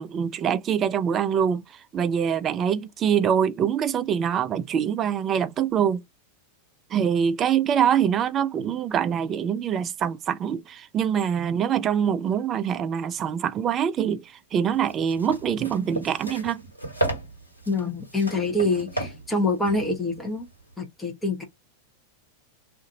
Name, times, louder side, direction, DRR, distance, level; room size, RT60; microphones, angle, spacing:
voice 1, 0.0-6.0 6.9-16.6, right 8 dB, 30° right, 0.4 m, -24 dB
sound 1, 14.7-20.7, right 1 dB, 85° left, 1.3 m, -34 dB
voice 2, 17.7-20.5 20.8-21.4, left 2 dB, 10° left, 0.9 m, -26 dB
2.6 x 2.5 x 3.9 m
figure-of-eight pair, 90°, 0 cm